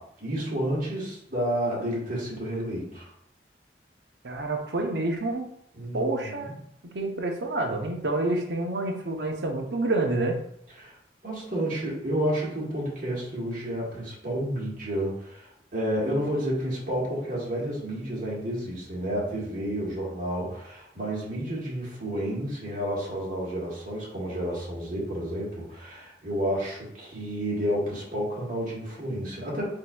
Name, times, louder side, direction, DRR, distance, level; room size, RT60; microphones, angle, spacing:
voice 1, 0.0-3.1 5.7-6.5 10.8-10.9 11.2-29.7, equal, 50° right, -5 dB, 1.6 m, -30 dB
voice 2, 4.2-5.5 5.9-6.5 6.9-10.4, right 2 dB, 80° right, 2 dB, 0.8 m, -28 dB
7.5 x 2.7 x 2.3 m, 0.73 s
head